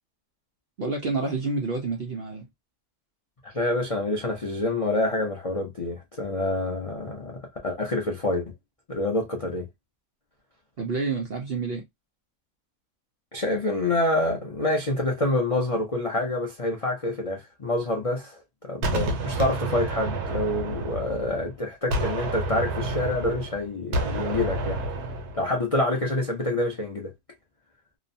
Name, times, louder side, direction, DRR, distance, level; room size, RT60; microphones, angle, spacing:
voice 1, 0.8-2.5 10.8-11.8, right 3 dB, 55° right, 0.7 m, -28 dB
voice 2, 3.4-8.5 8.9-9.7 13.3-24.8 25.3-27.1, left 2 dB, 60° left, 0.3 m, -27 dB
Gunshot gunfire, 18.8-21.5 21.9-25.5, right 2 dB, 75° right, 1.2 m, -29 dB
2.9 x 2.1 x 2.5 m
omnidirectional pair, 1.6 m